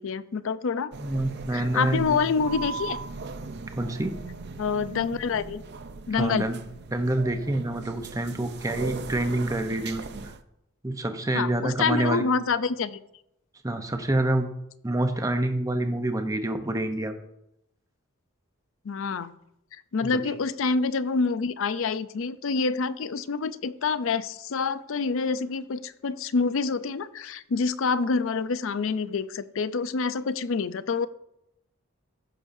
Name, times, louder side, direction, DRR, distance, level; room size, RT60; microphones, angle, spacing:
voice 1, 0.0-0.9 1.5-3.0 4.6-5.6 6.1-6.5 11.3-13.0 18.8-19.3 19.9-31.1, left 5 dB, 65° left, 14 dB, 0.5 m, -27 dB
sound 1, 0.9-10.4, right 4 dB, 50° right, 0.5 m, -38 dB
voice 2, 1.0-2.2 3.8-4.2 6.1-6.6 6.9-10.3 10.8-12.3 13.6-14.5 14.8-17.2 20.0-20.2, right 1 dB, 15° right, 7 dB, 0.8 m, -27 dB
15.5 x 6.4 x 2.7 m, 0.81 s
head